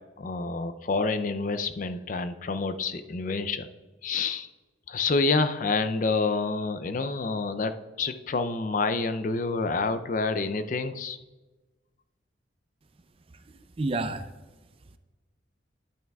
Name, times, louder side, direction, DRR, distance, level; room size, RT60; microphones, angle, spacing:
voice 1, 0.2-3.7 4.0-4.5 4.9-11.2, left 3 dB, 45° left, 11 dB, 0.4 m, -28 dB
voice 2, 13.3-14.3 14.8-15.0, right 2 dB, 30° right, 10 dB, 0.4 m, -32 dB
11.0 x 9.1 x 2.3 m, 1.2 s
head